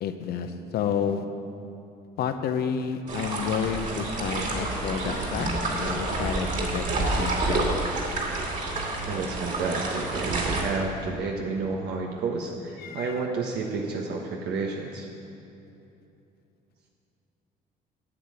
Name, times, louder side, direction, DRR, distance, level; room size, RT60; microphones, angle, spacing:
voice 1, 0.0-1.2 2.2-7.8 12.8-13.1, left 7 dB, 70° left, 8 dB, 0.8 m, -30 dB
sound 1, 3.1-10.6, right 2 dB, 50° right, 2.5 m, -29 dB
voice 2, 9.1-15.1, right 4 dB, 75° right, 0 dB, 1.1 m, -30 dB
8.6 x 8.4 x 7.7 m, 2.8 s
cardioid pair, 110°, 17 cm